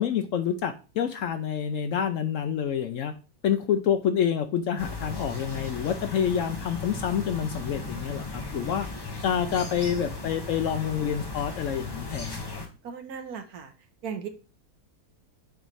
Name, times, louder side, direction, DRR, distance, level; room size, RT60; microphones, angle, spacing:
voice 1, 0.0-3.1 3.4-8.9 9.2-12.4, left 8 dB, 70° left, 9 dB, 0.8 m, -27 dB
sound 1, 4.8-12.7, left 3 dB, 20° left, 1.0 m, -36 dB
voice 2, 12.8-13.7 14.0-14.3, right 6 dB, 70° right, 7 dB, 1.4 m, -36 dB
7.0 x 3.1 x 5.3 m, 0.34 s
omnidirectional pair, 1.7 m